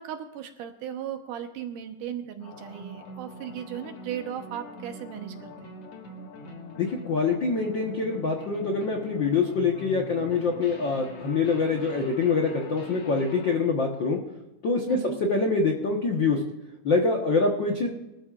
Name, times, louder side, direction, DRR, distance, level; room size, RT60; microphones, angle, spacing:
voice 1, 0.0-5.8 14.9-15.2, right 9 dB, 70° right, 6 dB, 2.5 m, -37 dB
sound 1, 2.4-13.6, left 2 dB, 50° left, 2.5 m, -43 dB
voice 2, 6.8-14.2 14.6-16.4 16.8-17.9, left 4 dB, 70° left, 1 dB, 1.1 m, -25 dB
23.0 x 13.0 x 2.5 m, 0.98 s
omnidirectional pair, 4.1 m